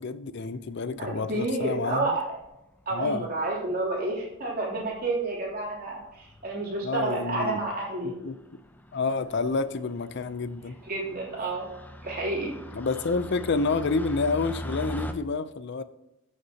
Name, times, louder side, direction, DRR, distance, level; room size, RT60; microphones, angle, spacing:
voice 1, 0.0-2.1 2.9-3.2 6.8-7.6 8.0-8.4 8.9-10.8 12.7-15.8, left 4 dB, 60° left, 14 dB, 0.5 m, -29 dB
sound 1, 1.0-1.5 2.4-2.8 3.7-3.8 4.0-4.1 4.3-4.4 4.8-5.1 5.5-5.7 6.0-15.1, equal, 10° left, 0.5 m, -41 dB
voice 2, 1.0-2.2 2.8-8.1 10.8-11.7 12.0-12.5, right 2 dB, 45° right, -4 dB, 3.0 m, -30 dB
14.0 x 6.6 x 2.8 m, 0.90 s
head